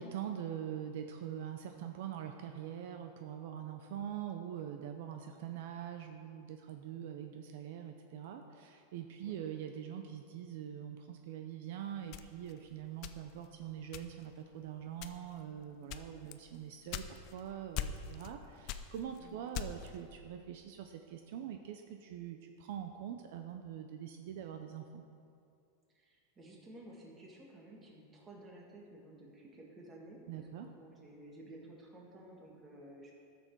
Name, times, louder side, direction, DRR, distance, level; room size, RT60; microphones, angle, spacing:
voice 1, 0.0-25.0 30.3-30.7, right 9 dB, 60° right, 5 dB, 0.6 m, -44 dB
sound 1, 12.1-13.5 13.9-14.4 14.9-15.4 15.9-17.4 17.7-18.4 18.7-20.0, left 11 dB, 40° left, 0.5 m, -41 dB
voice 2, 25.9-33.1, right 1 dB, 15° right, -2 dB, 1.6 m, -54 dB
13.5 x 6.9 x 4.6 m, 2.4 s
supercardioid pair, 170°, 0 cm